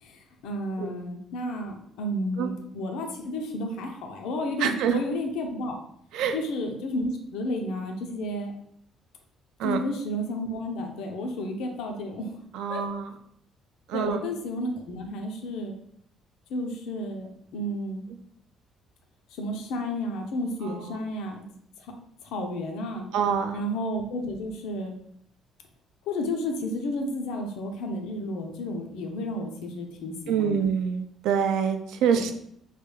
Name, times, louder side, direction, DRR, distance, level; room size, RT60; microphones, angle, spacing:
voice 1, 0.0-5.8 6.3-8.5 9.6-12.4 12.7-12.8 13.9-15.8 16.5-18.1 19.3-21.5 21.8-21.9 22.2-23.1 23.5-25.0 26.0-30.6 32.1-32.3, left 1 dB, 85° left, 3 dB, 0.5 m, -32 dB
voice 2, 4.6-5.0 6.1-6.3 9.6-9.8 12.5-13.0 13.9-14.2 20.6-20.7 23.1-23.6 30.3-32.3, right 7 dB, 85° right, 7 dB, 0.4 m, -25 dB
3.2 x 2.2 x 3.1 m, 0.69 s
cardioid pair, 175°, 0 cm